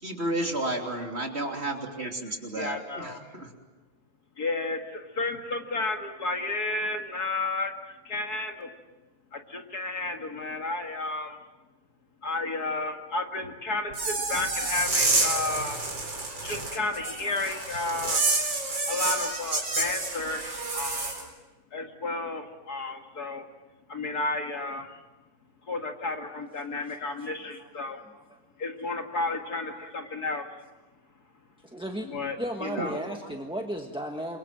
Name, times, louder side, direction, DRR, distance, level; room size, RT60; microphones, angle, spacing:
voice 1, 0.0-3.5 32.8-33.4, right 1 dB, 30° right, 2 dB, 3.3 m, -32 dB
voice 2, 2.5-3.2 4.4-7.7 8.1-8.7 9.3-11.4 12.2-15.8 16.4-18.2 18.9-21.3 21.7-23.4 23.9-24.9 25.7-28.0 28.6-30.5 32.1-32.4 32.6-33.0, left 2 dB, 50° left, 4 dB, 2.3 m, -32 dB
sound 1, 13.9-21.2, right 3 dB, 65° right, 4.8 m, -29 dB
voice 3, 29.4-29.9 31.6-32.1 32.4-34.4, right 1 dB, 5° right, 2 dB, 1.1 m, -36 dB
28.5 x 24.0 x 7.7 m, 1.2 s
omnidirectional pair, 2.2 m